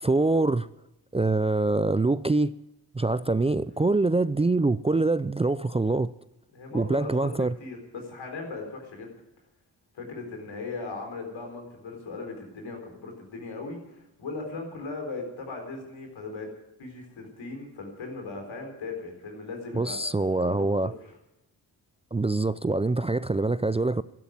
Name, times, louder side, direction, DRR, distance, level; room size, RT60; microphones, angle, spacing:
voice 1, 0.0-0.7 1.1-2.5 2.9-6.1 6.7-7.5 19.7-20.9 22.1-24.0, right 2 dB, 15° right, 0.5 m, -24 dB
voice 2, 6.5-9.1 9.9-16.5 16.8-20.0 20.4-21.1, left 3 dB, 75° left, 4.2 m, -38 dB
12.5 x 11.5 x 9.3 m
supercardioid pair, 40°, 46 cm